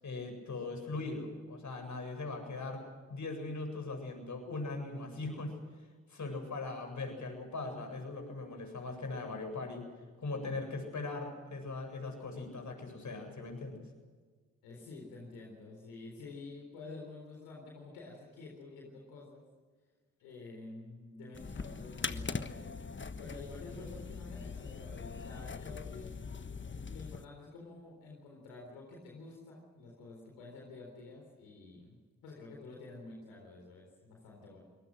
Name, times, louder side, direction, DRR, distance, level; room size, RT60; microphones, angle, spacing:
voice 1, 0.0-2.8 3.1-5.5 6.1-9.8 10.2-13.8, left 3 dB, 55° left, 4 dB, 7.8 m, -40 dB
voice 2, 14.6-19.4 20.2-22.7 23.2-26.1 26.8-34.6, left 3 dB, 90° left, -1 dB, 4.0 m, -49 dB
sound 1, 21.3-27.2, left 5 dB, 35° left, 1.3 m, -41 dB
26.5 x 20.0 x 6.3 m, 1.5 s
hypercardioid pair, 40°, 35 cm